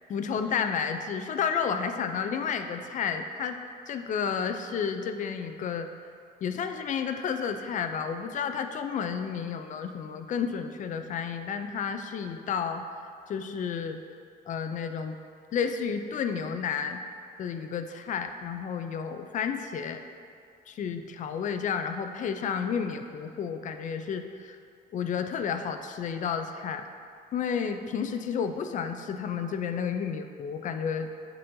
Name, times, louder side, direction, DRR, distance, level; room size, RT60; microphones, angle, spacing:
voice 1, 0.1-3.6 3.9-5.9 6.4-12.8 13.3-14.0 14.5-15.2 15.5-17.0 17.4-20.0 20.7-24.6 24.9-26.9 27.3-31.1, left 6 dB, 45° left, 7 dB, 0.4 m, -31 dB
11.0 x 4.2 x 2.6 m, 2.3 s
cardioid pair, 140°, 18 cm